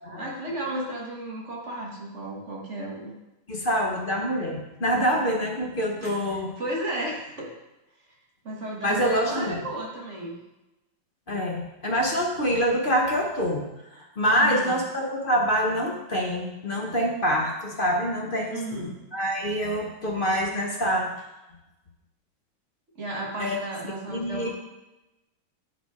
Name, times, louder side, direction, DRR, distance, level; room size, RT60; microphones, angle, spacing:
voice 1, 0.1-3.1 6.0-7.5 8.4-10.4 14.4-14.8 18.5-19.0 22.9-24.5, right 1 dB, 40° right, -2 dB, 1.6 m, -34 dB
voice 2, 3.5-6.5 8.8-9.6 11.3-13.7 13.9-21.1 23.4-23.6 24.1-24.5, equal, 45° left, 0 dB, 0.7 m, -26 dB
10.0 x 4.1 x 4.7 m, 1.0 s
omnidirectional pair, 2.2 m